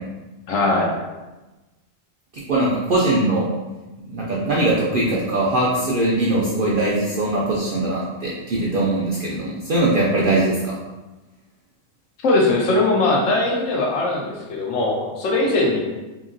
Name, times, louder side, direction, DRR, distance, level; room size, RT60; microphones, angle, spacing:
voice 1, 0.5-0.9 12.2-15.8, left 2 dB, 75° left, -1 dB, 1.0 m, -20 dB
voice 2, 2.5-3.5 4.1-10.7, right 2 dB, 65° right, -6 dB, 0.5 m, -21 dB
2.9 x 2.8 x 2.5 m, 1.1 s
omnidirectional pair, 1.4 m